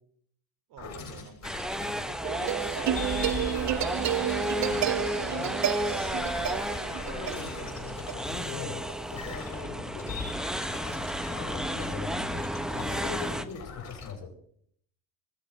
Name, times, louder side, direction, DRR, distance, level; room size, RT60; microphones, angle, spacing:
voice 1, 0.7-7.4, right 5 dB, 65° right, 6 dB, 3.8 m, -49 dB
sound 1, 0.8-2.1 2.5-8.6 9.1-12.0 12.4-14.1, left 5 dB, 40° left, 7.1 m, -41 dB
sound 2, 1.4-13.4, equal, ahead, 1.1 m, -33 dB
sound 3, 2.2-9.6, right 11 dB, 45° right, 0.9 m, -31 dB
voice 2, 5.2-5.5 7.0-10.4 11.1-14.3, left 5 dB, 70° left, 3 dB, 5.8 m, -41 dB
21.5 x 8.1 x 7.8 m, 0.66 s
supercardioid pair, 100°, 40 cm